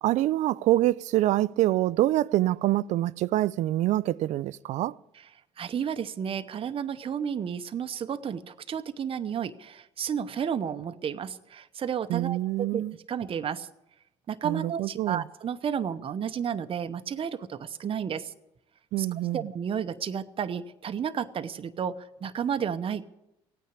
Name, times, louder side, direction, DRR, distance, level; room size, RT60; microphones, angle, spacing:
voice 1, 0.0-5.0 12.1-13.0 14.4-15.2 18.9-19.4, right 15 dB, 65° right, 0.4 m, -25 dB
voice 2, 5.6-13.7 14.3-18.3 19.0-19.1 19.3-23.1, right 8 dB, 45° right, 0.9 m, -32 dB
16.5 x 9.4 x 8.5 m
hypercardioid pair, 60°, 13 cm